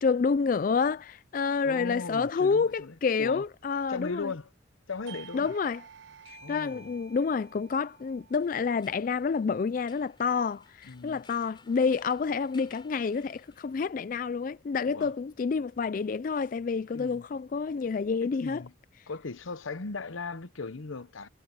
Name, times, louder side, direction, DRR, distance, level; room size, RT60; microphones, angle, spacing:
voice 1, 0.0-4.3 5.3-5.8 6.5-18.6, left 5 dB, 45° left, 0.3 m, -28 dB
voice 2, 1.6-3.4 3.9-4.5 4.9-5.5 6.4-7.0 10.8-11.2 14.8-15.1 16.9-17.3 18.2-18.7 19.1-21.3, left 4 dB, 85° left, 0.9 m, -38 dB
Doorbell, 5.1-10.3, right 6 dB, 80° right, 4.5 m, -52 dB
sound 1, 8.3-14.0, left 4 dB, 25° left, 5.4 m, -59 dB
head